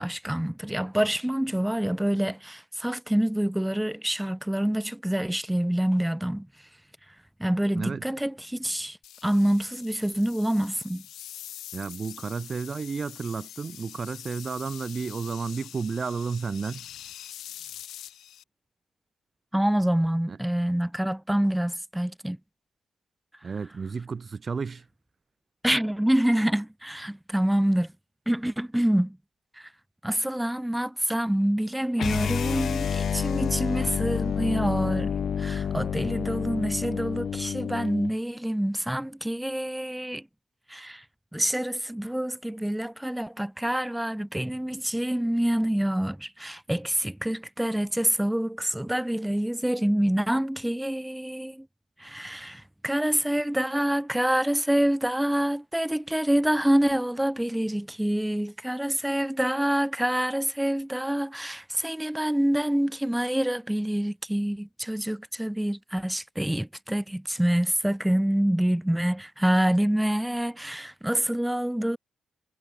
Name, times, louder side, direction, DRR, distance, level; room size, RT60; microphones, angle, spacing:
voice 1, 0.0-6.5 7.4-9.0 9.2-11.0 19.5-22.4 25.6-27.9 28.3-29.2 29.6-29.7 30.0-40.2 40.7-41.0 41.3-51.7 52.0-72.0, right 1 dB, 5° right, 2.3 m, -26 dB
sound 1, 9.0-18.4, left 11 dB, 85° left, 4.5 m, -44 dB
voice 2, 11.7-16.8 20.3-20.4 23.4-24.8, right 5 dB, 45° right, 2.7 m, -32 dB
sound 2, 32.0-38.1, left 7 dB, 60° left, 2.3 m, -29 dB
cardioid pair, 70°, 0 cm